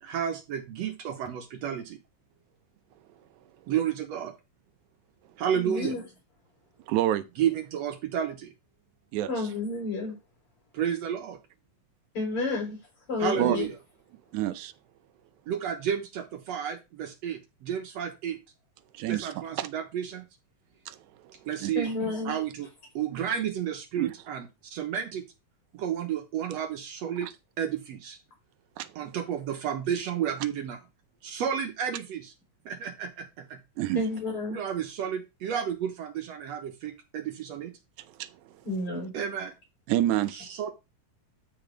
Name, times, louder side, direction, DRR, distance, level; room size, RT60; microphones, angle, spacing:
voice 1, 0.0-2.0 3.7-4.3 5.4-6.0 7.4-8.5 10.7-11.4 13.2-13.8 15.5-18.4 19.1-20.3 21.5-21.9 22.3-22.7 23.0-25.3 25.7-28.2 29.0-30.8 31.2-32.3 32.7-33.6 34.5-37.7 39.1-39.5 40.3-40.7, right 9 dB, 70° right, 2.0 m, -31 dB
voice 2, 5.5-6.0 9.3-10.2 12.1-12.8 13.1-13.7 21.8-22.4 33.9-34.6 38.6-39.1, left 2 dB, 45° left, 4.6 m, -30 dB
voice 3, 6.9-7.3 9.1-9.3 13.4-13.6 14.3-14.7 18.9-19.3 19.6-19.7 20.9-21.0 21.6-21.7 23.1-23.2 24.0-24.1 27.2-27.3 28.8-28.9 33.8-34.0 38.2-38.3 39.9-40.3, right 13 dB, 85° right, 2.1 m, -27 dB
13.0 x 4.5 x 3.3 m
omnidirectional pair, 3.4 m